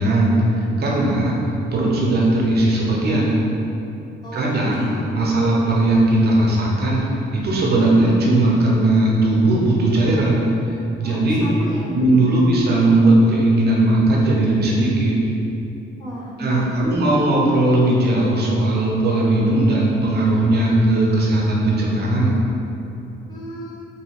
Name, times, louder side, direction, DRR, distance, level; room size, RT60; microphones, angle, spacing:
voice 1, 0.0-1.3 1.7-3.3 4.3-7.0 7.3-10.4 11.0-11.4 11.9-15.2 16.4-22.3, right 1 dB, 55° right, -3 dB, 0.7 m, -18 dB
voice 2, 4.2-5.5 11.0-11.9 16.0-16.7 23.3-23.9, equal, 20° left, -8 dB, 1.0 m, -36 dB
2.9 x 2.8 x 2.9 m, 2.8 s
cardioid pair, 90°, 20 cm